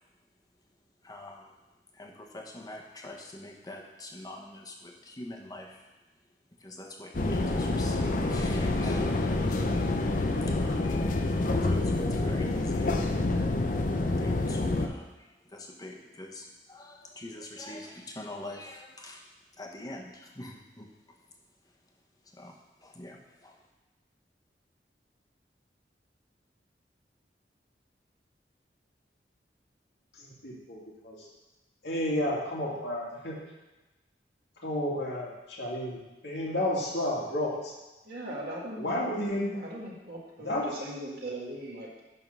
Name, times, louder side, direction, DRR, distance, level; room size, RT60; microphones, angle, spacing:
voice 1, 1.0-1.5 1.9-5.8 6.6-9.2 9.5-9.7 10.5-10.9 11.6-13.0 14.2-19.2 19.6-20.9 22.3-22.6 22.8-23.5, left 1 dB, 20° left, 1 dB, 0.9 m, -44 dB
sound 1, 7.1-14.9, left 2 dB, 50° left, 0.6 m, -27 dB
voice 2, 30.2-31.2 31.8-33.4 34.6-37.7 38.8-39.5 40.4-40.6, left 1 dB, 80° left, -4 dB, 2.1 m, -31 dB
voice 3, 38.0-39.0 39.5-42.0, right 1 dB, 60° right, -4 dB, 1.9 m, -39 dB
11.0 x 3.7 x 5.4 m, 1.1 s
head